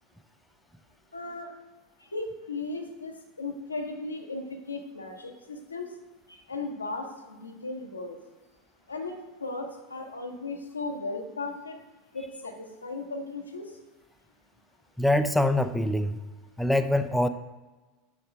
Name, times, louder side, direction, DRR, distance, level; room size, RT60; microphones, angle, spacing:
voice 1, 1.1-1.5 2.0-5.9 6.3-8.2 8.9-11.8 12.1-13.7, left 3 dB, 90° left, 3 dB, 0.8 m, -36 dB
voice 2, 15.0-16.2 16.6-17.3, left 1 dB, ahead, 8 dB, 0.4 m, -24 dB
5.9 x 5.3 x 4.5 m, 1.2 s
figure-of-eight pair, 85°, 0 cm